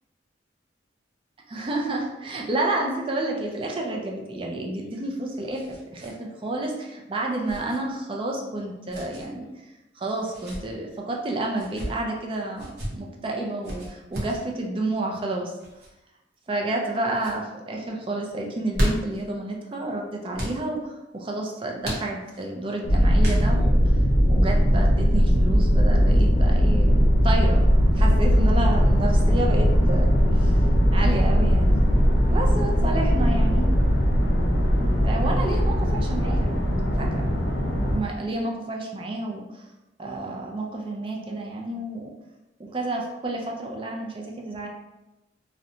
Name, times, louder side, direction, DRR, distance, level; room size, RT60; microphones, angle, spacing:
voice 1, 1.5-5.7 5.9-9.5 10.0-15.6 16.5-23.9 24.3-27.7 27.9-30.1 30.3-30.5 30.9-31.8 32.3-33.7 35.0-39.5 40.0-42.1 42.6-44.7, right 2 dB, 30° right, 0 dB, 0.3 m, -30 dB
sound 1, 4.8-6.1 6.4-6.5 7.5-7.8 8.9-9.3 10.2-10.6 11.5-11.9 12.6-12.9 13.6-14.4 15.6-15.9 16.5-16.9 17.2-17.4 18.5-19.2 20.3-20.6 21.8-22.5 23.2-23.7, equal, 60° right, 0.7 m, -32 dB
sound 2, 22.8-38.0, equal, 80° left, 0.6 m, -19 dB
2.6 x 2.1 x 2.7 m, 1.0 s
head